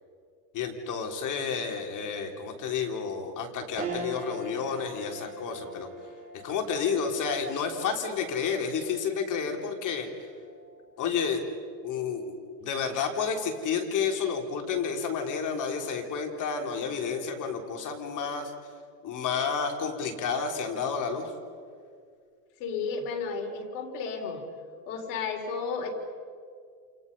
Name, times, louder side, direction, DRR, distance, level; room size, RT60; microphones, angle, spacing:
voice 1, 0.5-5.9 6.4-10.1 11.0-11.4 11.8-12.3 12.6-18.5 19.0-21.3, left 6 dB, 40° left, 3 dB, 3.7 m, -30 dB
sound 1, 3.8-13.4 13.9-14.0 15.3-15.7, right 2 dB, 15° right, 7.0 m, -43 dB
voice 2, 22.6-24.4 24.9-25.9, left 5 dB, 75° left, 3 dB, 4.3 m, -33 dB
28.5 x 28.5 x 5.5 m, 2.2 s
supercardioid pair, 125°, 47 cm